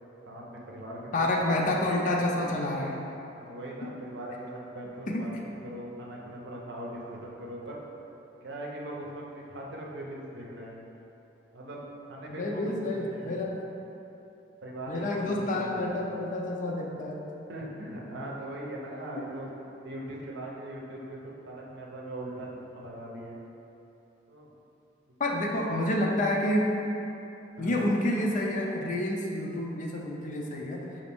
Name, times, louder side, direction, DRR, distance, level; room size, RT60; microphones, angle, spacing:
voice 1, 0.2-1.8 2.1-2.5 3.4-5.3 5.6-7.8 8.4-10.8 11.5-11.8 12.1-13.5 14.6-16.0 17.5-19.5 19.8-23.4 24.3-24.5 25.3-26.1 27.6-27.9, right 1 dB, 65° right, -3 dB, 0.6 m, -40 dB
voice 2, 1.1-2.9 5.1-5.2 12.3-13.5 14.9-17.2 25.2-26.7 27.6-30.8, left 1 dB, 40° left, -1 dB, 0.4 m, -28 dB
5.0 x 2.5 x 3.4 m, 2.9 s
head